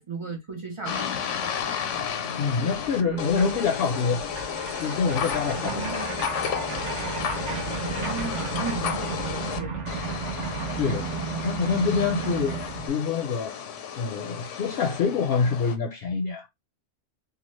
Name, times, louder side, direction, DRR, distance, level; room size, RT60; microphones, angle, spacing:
voice 1, 0.0-1.5 3.1-3.6 5.6-6.3 7.8-10.4, right 5 dB, 35° right, 0.5 m, -36 dB
sound 1, 0.9-9.6 9.9-15.8, left 8 dB, 85° left, 0.9 m, -33 dB
sound 2, 1.8-1.9 2.0-12.9, right 5 dB, 75° right, 1.1 m, -34 dB
voice 2, 2.4-4.2 4.8-5.9 10.8-13.5 14.0-16.5, left 5 dB, 65° left, 0.7 m, -26 dB
2.8 x 2.2 x 3.0 m
omnidirectional pair, 1.2 m